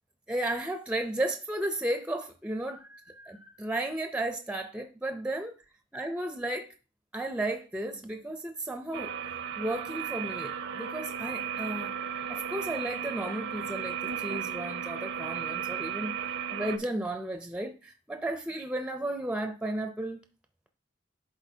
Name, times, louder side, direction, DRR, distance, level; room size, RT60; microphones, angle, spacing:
voice 1, 0.3-5.5 5.9-6.7 7.1-9.2 9.6-11.9 12.3-16.2 16.5-20.2, right 1 dB, 5° right, 0.4 m, -34 dB
sound 1, 8.9-16.8, right 8 dB, 65° right, 0.5 m, -35 dB
11.0 x 3.9 x 2.7 m
head